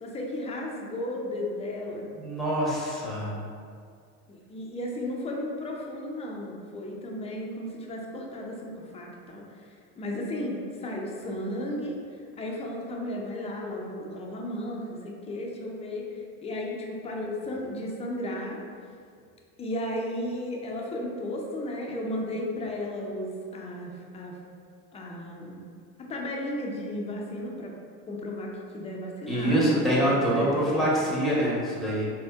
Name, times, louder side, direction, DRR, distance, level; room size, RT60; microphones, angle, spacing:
voice 1, 0.0-2.1 4.3-9.4 10.0-12.0 12.4-16.1 16.4-18.6 19.6-24.4 24.9-25.7 26.1-27.7 28.1-29.8 30.0-30.6, left 1 dB, 15° left, -1 dB, 0.3 m, -34 dB
voice 2, 2.1-3.3 29.3-32.0, right 1 dB, ahead, -6 dB, 0.9 m, -25 dB
4.1 x 2.1 x 2.3 m, 2.2 s
hypercardioid pair, 80°, 45 cm